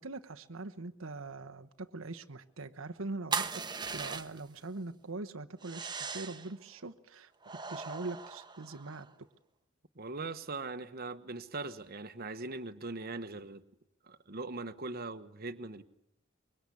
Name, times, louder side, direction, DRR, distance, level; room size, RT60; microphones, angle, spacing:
voice 1, 0.0-3.5 3.9-9.1, right 3 dB, 80° right, 6 dB, 1.1 m, -42 dB
sound 1, 3.3-4.6 5.6-6.5 7.4-9.1, right 5 dB, 20° right, 1.2 m, -38 dB
voice 2, 10.0-13.6 14.0-15.8, right 3 dB, 50° right, 9 dB, 1.3 m, -40 dB
25.0 x 23.0 x 8.6 m, 0.74 s
head